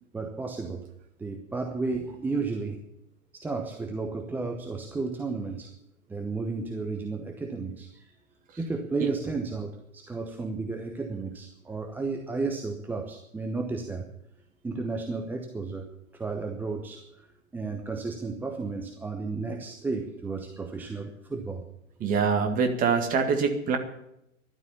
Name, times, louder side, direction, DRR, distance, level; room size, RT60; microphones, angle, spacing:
voice 1, 0.1-0.9 1.2-2.8 3.3-5.7 6.1-8.1 8.6-14.1 14.6-17.3 17.5-21.6 22.0-22.2, right 3 dB, 5° right, 3 dB, 0.8 m, -33 dB
voice 2, 22.0-23.8, right 5 dB, 20° right, 5 dB, 2.0 m, -24 dB
13.5 x 12.0 x 7.1 m, 0.80 s
figure-of-eight pair, 110°, 40 cm